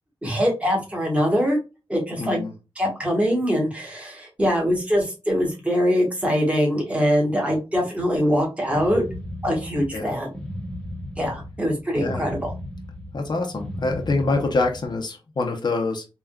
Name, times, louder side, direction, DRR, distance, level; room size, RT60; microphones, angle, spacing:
voice 1, 0.2-1.6 1.9-2.4 2.8-9.0 9.4-10.3 11.2-12.5, equal, 15° right, -1 dB, 1.2 m, -23 dB
voice 2, 2.2-2.5 9.9-10.1 11.9-12.3 13.1-16.0, left 3 dB, 50° left, 2 dB, 0.6 m, -25 dB
sound 1, 8.7-15.0, equal, 10° left, 0.8 m, -35 dB
3.5 x 2.3 x 2.2 m, 0.29 s
wide cardioid pair, 90°, 9 cm